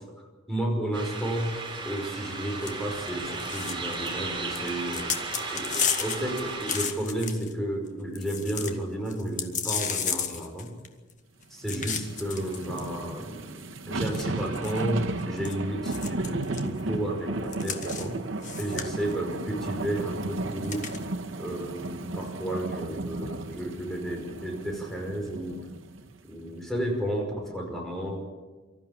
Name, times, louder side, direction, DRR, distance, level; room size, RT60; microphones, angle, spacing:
voice 1, 0.5-1.5 1.8-5.1 5.5-10.7 11.5-13.6 13.9-18.2 18.6-20.8 21.4-25.5 26.3-28.2, right 1 dB, ahead, 0 dB, 5.2 m, -32 dB
sound 1, 0.9-6.9, right 3 dB, 25° right, 3.9 m, -35 dB
sound 2, 2.6-2.7 3.0-3.1 3.4-4.1 4.5-7.5 7.9-8.0 8.1-8.7 9.1-11.1 11.7-12.8 13.6-13.7 14.1-15.5 15.8-16.7 17.5-18.1 18.4-19.1 20.6-21.0, left 7 dB, 40° left, 1.7 m, -32 dB
sound 3, 11.6-26.1 26.5-26.6, right 2 dB, 85° right, 1.5 m, -34 dB
25.0 x 13.5 x 8.7 m, 1.2 s
head